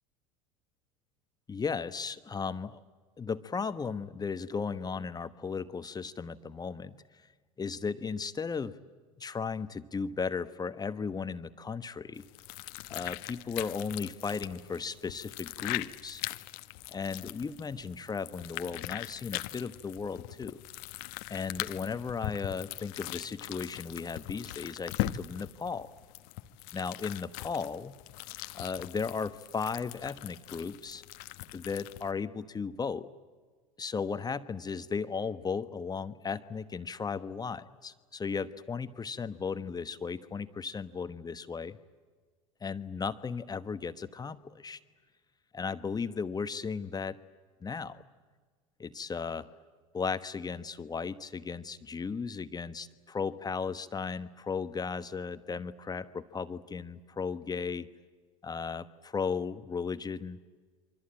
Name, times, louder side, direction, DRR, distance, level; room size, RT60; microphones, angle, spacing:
voice 1, 1.5-2.8 3.2-6.9 7.6-8.7 9.2-12.2 12.9-16.2 16.9-20.6 21.3-25.9 26.7-28.0 28.5-31.0 31.5-33.1 33.8-41.8 42.6-44.8 45.5-47.2 47.6-48.0 48.8-49.4 49.9-57.9 58.4-60.4, left 5 dB, 20° left, 11 dB, 1.2 m, -35 dB
sound 1, 12.1-32.1, left 17 dB, 65° left, 1.1 m, -41 dB
28.0 x 24.0 x 8.8 m, 1.5 s
hypercardioid pair, 85°, 17 cm